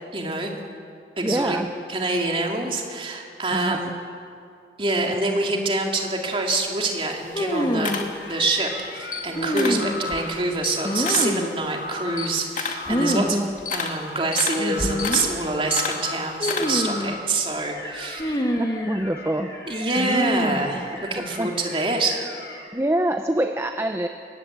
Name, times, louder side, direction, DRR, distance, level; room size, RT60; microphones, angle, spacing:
voice 1, 0.1-0.5 1.2-1.6 1.9-3.9 4.8-8.0 8.3-13.5 13.7-18.3 19.7-22.3, right 2 dB, 30° right, 1 dB, 2.8 m, -26 dB
voice 2, 1.2-1.7 3.5-3.8 13.2-13.5 18.6-19.5 21.4-21.5 22.7-24.1, right 1 dB, 15° right, 6 dB, 0.8 m, -25 dB
Camera, 6.1-8.7 9.0-9.9 10.3-17.0, left 5 dB, 45° left, 2.3 m, -32 dB
sound 1, 7.3-8.1 9.4-10.2 10.8-11.6 12.9-13.3 13.6-13.7 14.6-15.3 16.4-17.2 18.2-19.0 20.0-20.7, equal, 25° left, 1.7 m, -25 dB
sound 2, 8.2-9.2 9.8-10.3 10.7-11.3 11.7-12.3 12.7-13.3 13.7-14.2 14.7-15.2 15.7-16.2 16.6-17.2 17.6-22.7, left 3 dB, 70° left, 5.2 m, -37 dB
22.0 x 18.5 x 8.6 m, 2.3 s
head